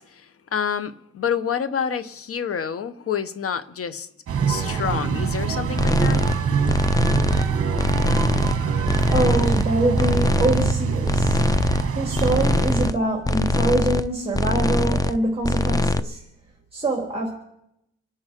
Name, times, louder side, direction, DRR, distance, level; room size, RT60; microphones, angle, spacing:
voice 1, 0.0-4.1 4.5-6.2, left 7 dB, 50° left, 1.2 m, -28 dB
sound 1, 4.3-12.9, right 5 dB, 50° right, 1.8 m, -24 dB
sound 2, 5.8-6.4 6.7-7.5 7.8-8.6 8.9-9.7 10.0-10.8 11.1-11.9 12.1-12.9 13.2-14.1 14.3-15.2 15.4-16.0, left 2 dB, 10° left, 0.6 m, -22 dB
voice 2, 9.0-11.4 11.9-16.2 16.7-17.3, right 2 dB, 20° right, 3.7 m, -24 dB
28.5 x 9.8 x 4.6 m
cardioid pair, 90°, 30 cm